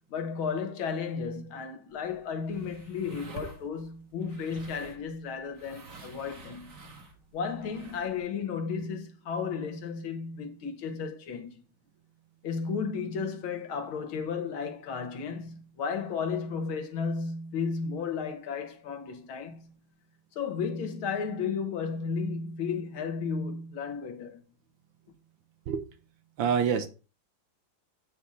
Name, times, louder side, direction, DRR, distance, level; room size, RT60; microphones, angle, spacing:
voice 1, 0.1-6.8 7.3-11.6 12.4-19.7 20.4-24.4, left 5 dB, 85° left, 2.0 m, -33 dB
sound 1, 1.9-8.2, right 3 dB, 45° right, 1.7 m, -49 dB
voice 2, 26.4-26.9, right 7 dB, 70° right, 1.6 m, -26 dB
8.2 x 4.2 x 4.9 m
omnidirectional pair, 2.2 m